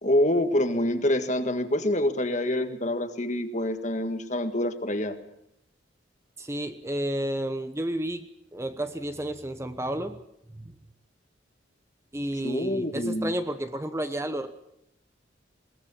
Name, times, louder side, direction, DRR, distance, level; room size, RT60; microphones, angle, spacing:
voice 1, 0.0-5.2 12.4-13.3, left 1 dB, 40° left, 8 dB, 1.8 m, -26 dB
voice 2, 6.4-8.3 8.5-10.2 10.6-10.7 12.1-14.5, right 1 dB, 15° right, 9 dB, 1.0 m, -31 dB
21.5 x 20.0 x 7.2 m, 0.79 s
head